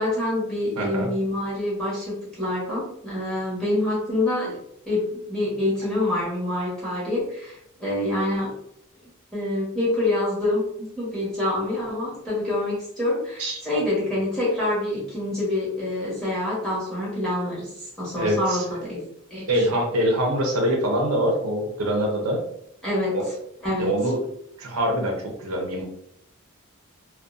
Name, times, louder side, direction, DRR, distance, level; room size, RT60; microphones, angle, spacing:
voice 1, 0.0-4.6 4.9-8.5 9.3-10.6 11.0-19.0 19.3-19.8 22.8-23.2 23.6-23.9, left 1 dB, 5° left, -9 dB, 1.1 m, -26 dB
voice 2, 0.8-1.1 13.4-13.6 18.2-18.7 19.5-22.4 23.1-23.3 23.8-24.2 24.6-25.8, right 1 dB, 80° right, 1 dB, 0.6 m, -24 dB
2.4 x 2.1 x 2.4 m, 0.75 s
head